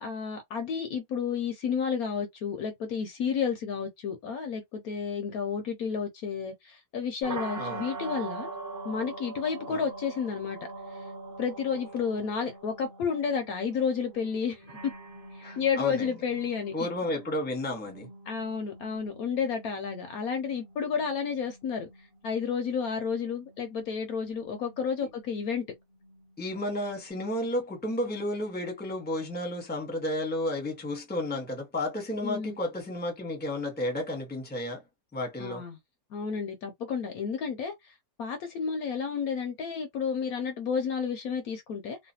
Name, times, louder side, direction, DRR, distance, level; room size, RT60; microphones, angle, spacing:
voice 1, 0.0-8.5 8.8-10.6 10.9-11.0 11.4-14.9 15.3-16.7 18.3-21.9 22.2-25.6 32.2-32.6 35.4-35.8 36.1-37.9 38.2-42.0, left 6 dB, 70° left, 1.0 m, -31 dB
sound 1, 7.2-27.0, right 3 dB, 30° right, 1.4 m, -44 dB
voice 2, 15.4-16.1 16.7-18.1 26.4-34.8 35.1-35.6, left 1 dB, 10° left, 0.8 m, -32 dB
3.1 x 2.2 x 2.7 m
omnidirectional pair, 1.8 m